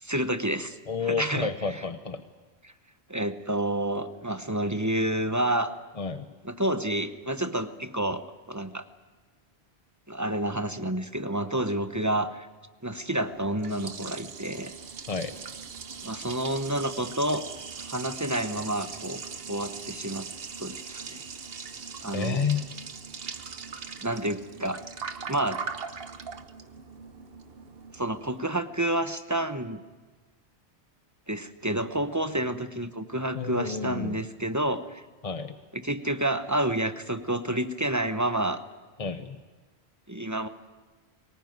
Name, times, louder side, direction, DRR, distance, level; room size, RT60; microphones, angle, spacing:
voice 1, 0.0-0.8 1.0-1.5 2.6-2.7 3.1-5.7 6.4-8.2 8.5-8.8 10.1-12.5 12.8-14.7 16.0-17.4 17.9-19.2 19.5-20.3 20.6-21.2 22.0-22.4 24.0-24.8 25.3-25.6 27.9-29.8 31.3-35.0 35.7-38.6 40.1-40.5, right 1 dB, 15° right, 10 dB, 0.9 m, -29 dB
voice 2, 0.9-2.2 6.0-6.3 15.1-15.3 22.1-22.6 33.3-34.2 35.2-35.6 39.0-39.4, left 5 dB, 35° left, 9 dB, 0.8 m, -30 dB
Liquid, 13.2-28.4, right 5 dB, 65° right, 1.2 m, -40 dB
23.5 x 19.5 x 9.3 m, 1.3 s
omnidirectional pair, 1.1 m